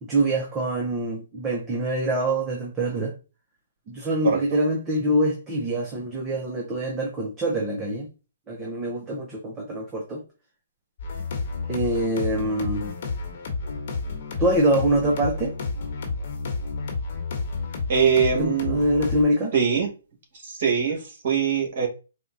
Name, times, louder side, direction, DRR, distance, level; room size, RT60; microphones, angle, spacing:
voice 1, 0.0-3.1 3.9-8.1 8.5-10.2 11.7-12.9 14.4-15.5 18.4-19.5, right 1 dB, 20° right, 0.7 m, -25 dB
sound 1, 11.0-19.2, left 4 dB, 50° left, 1.1 m, -31 dB
voice 2, 17.9-18.8 19.5-19.9 20.4-21.9, right 6 dB, 50° right, 1.9 m, -22 dB
4.2 x 2.3 x 2.7 m
hypercardioid pair, 145°, 0 cm